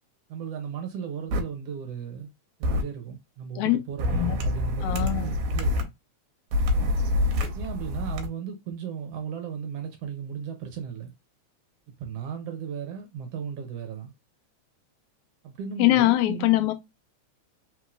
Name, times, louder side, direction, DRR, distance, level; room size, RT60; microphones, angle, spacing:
voice 1, 0.3-2.3 2.6-5.9 7.5-11.1 12.0-14.1 15.4-16.7, right 7 dB, 65° right, 1.8 m, -36 dB
sound 1, 1.3-1.4 2.6-2.8 4.0-5.8 6.5-8.3, left 1 dB, 90° right, 2.3 m, -26 dB
voice 2, 4.8-5.3 15.8-16.7, left 17 dB, 85° left, 2.0 m, -22 dB
4.6 x 3.6 x 2.5 m
omnidirectional pair, 3.3 m